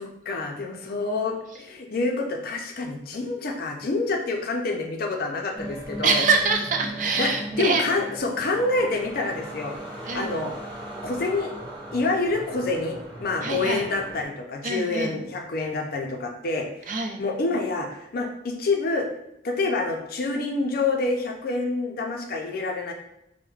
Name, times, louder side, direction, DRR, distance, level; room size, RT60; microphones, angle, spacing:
voice 1, 0.0-6.2 7.2-9.7 10.1-10.5 11.0-11.5 11.9-16.9 17.2-19.1 19.4-22.9, left 3 dB, 55° left, 2 dB, 0.5 m, -27 dB
sound 1, 5.6-14.2, right 1 dB, 25° right, 0.8 m, -38 dB
voice 2, 6.0-7.8 10.1-10.5 13.4-13.8 14.6-15.2 16.9-17.2, right 4 dB, 45° right, 4 dB, 0.4 m, -25 dB
4.4 x 2.1 x 2.3 m, 0.82 s
head